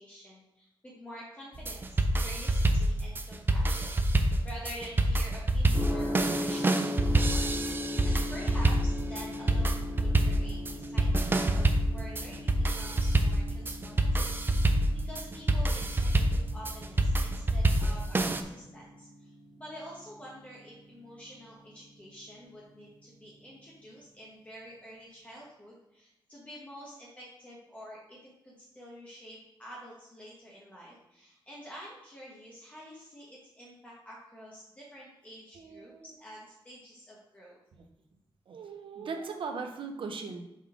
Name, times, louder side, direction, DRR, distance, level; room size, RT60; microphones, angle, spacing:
voice 1, 0.0-28.2 28.4-37.6, equal, 15° left, -5 dB, 1.0 m, -48 dB
sound 1, 1.6-18.4, right 1 dB, 25° right, 0.4 m, -27 dB
Gong, 5.7-23.6, left 1 dB, 5° right, 1.8 m, -40 dB
voice 2, 35.5-36.0 37.8-37.9 38.5-40.5, right 4 dB, 75° right, 5 dB, 0.8 m, -39 dB
5.5 x 3.6 x 4.9 m, 0.87 s
wide cardioid pair, 170°, 9 cm